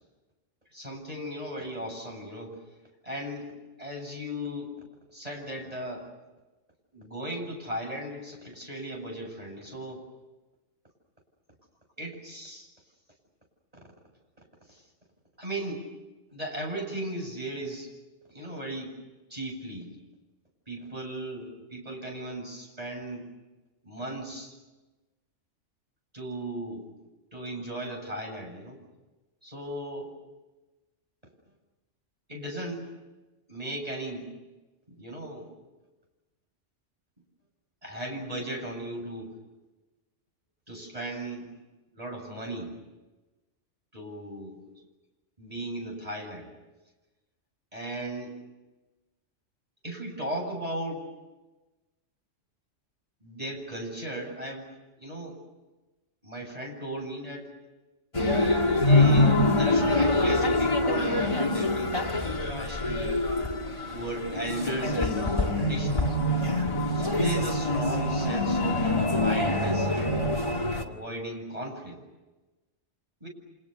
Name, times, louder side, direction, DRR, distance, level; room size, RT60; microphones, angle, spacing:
voice 1, 0.7-2.6 3.0-3.5 3.8-4.7 5.1-6.1 6.9-10.0 12.0-12.7 14.7-14.8 15.4-15.9 16.3-17.9 18.3-19.0 19.3-19.9 20.7-23.3 23.8-24.5 26.1-26.9 27.3-28.8 29.4-30.1 32.3-32.9 33.5-34.3 34.9-35.5 37.8-39.3 40.7-41.5 41.9-42.7 43.9-44.7 45.4-46.5 47.7-48.3 49.8-51.1 53.2-54.7 55.0-55.4 56.2-57.5 58.6-63.1 63.9-66.2 66.9-70.3 70.8-72.0 73.2-73.3, right 1 dB, 30° right, 1 dB, 7.8 m, -37 dB
sound 1, 58.1-70.8, left 2 dB, 25° left, 2.2 m, -25 dB
30.0 x 27.0 x 6.8 m, 1.1 s
omnidirectional pair, 1.3 m